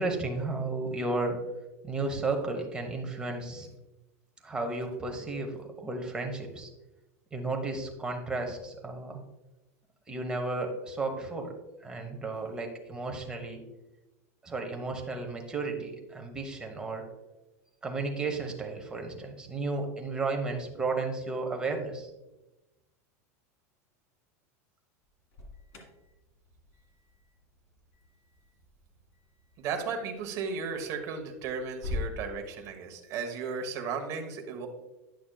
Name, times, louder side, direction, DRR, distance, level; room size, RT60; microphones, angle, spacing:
voice 1, 0.0-1.4 1.8-3.7 4.4-6.7 7.3-9.2 10.1-11.5 11.8-13.6 14.4-17.1 17.8-22.1, right 3 dB, 10° right, 2 dB, 0.9 m, -33 dB
Alarm, 25.0-32.1, left 2 dB, 40° left, 1.8 m, -44 dB
voice 2, 29.6-34.7, right 5 dB, 40° right, 4 dB, 1.1 m, -35 dB
10.5 x 6.0 x 2.3 m, 1.0 s
supercardioid pair, 155°, 8 cm